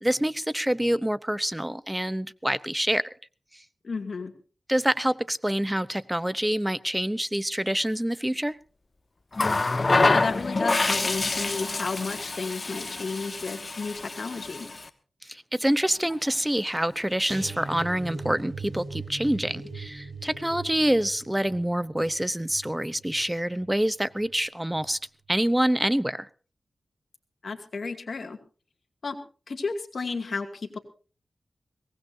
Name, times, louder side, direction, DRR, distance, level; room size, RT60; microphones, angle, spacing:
voice 1, 0.0-3.0 4.7-8.6 15.2-25.0 25.3-26.3, right 1 dB, 10° right, 0.8 m, -26 dB
voice 2, 3.8-4.3 10.0-14.7 27.4-28.4 29.0-29.2 29.5-30.8, left 4 dB, 70° left, 2.4 m, -32 dB
Water tap faucet, 9.3-14.9 16.1-16.3, left 3 dB, 40° left, 1.4 m, -26 dB
sound 1, 17.3-24.4 24.7-25.0 25.4-25.5, right 4 dB, 55° right, 6.5 m, -40 dB
22.5 x 18.5 x 2.8 m
wide cardioid pair, 65°, 0 cm